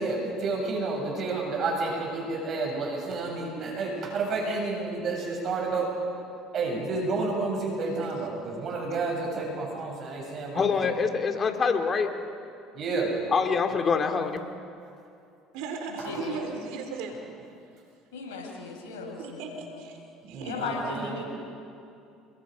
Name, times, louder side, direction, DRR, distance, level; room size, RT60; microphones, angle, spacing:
voice 1, 0.0-5.9 6.5-10.9 12.8-13.1 20.2-21.2, right 3 dB, 50° right, 0 dB, 7.6 m, -30 dB
voice 2, 7.8-8.3 15.5-17.3 19.2-20.0 20.3-20.6, right 4 dB, 70° right, 5 dB, 3.5 m, -37 dB
voice 3, 10.5-12.1 13.3-14.4, left 5 dB, 35° left, 6 dB, 2.5 m, -25 dB
voice 4, 16.0-16.6 18.1-19.4 20.4-21.2, left 3 dB, 80° left, -1 dB, 6.3 m, -36 dB
29.0 x 21.5 x 5.3 m, 2.6 s
hypercardioid pair, 70°, 0 cm